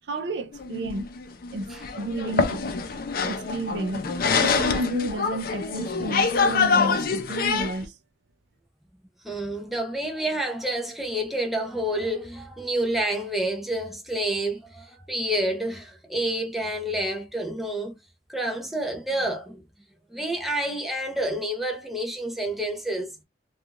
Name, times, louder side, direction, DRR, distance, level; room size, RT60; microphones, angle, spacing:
voice 1, 0.1-1.1 1.5-2.7 3.2-4.0 4.4-7.9, right 1 dB, 80° right, 0.5 m, -31 dB
sound 1, 0.5-7.9, left 5 dB, 55° left, 0.5 m, -25 dB
voice 2, 9.2-18.0 18.3-19.6 20.1-23.2, right 1 dB, ahead, 0.6 m, -29 dB
2.4 x 2.4 x 2.8 m
head